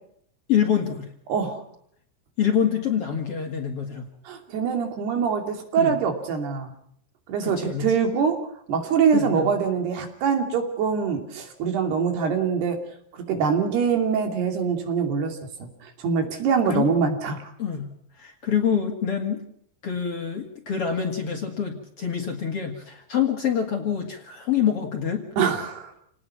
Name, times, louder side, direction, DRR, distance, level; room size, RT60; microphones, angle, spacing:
voice 1, 0.5-1.1 2.4-4.1 5.8-5.9 7.4-7.9 9.1-9.5 16.7-16.9 17.6-17.9 18.2-19.4 19.8-25.3, left 8 dB, 45° left, 3 dB, 2.4 m, -26 dB
voice 2, 1.3-1.6 4.3-6.7 7.3-8.4 8.7-12.8 13.1-17.5 25.4-26.0, right 6 dB, 75° right, 4 dB, 4.8 m, -24 dB
28.5 x 19.0 x 5.9 m, 0.67 s
omnidirectional pair, 4.7 m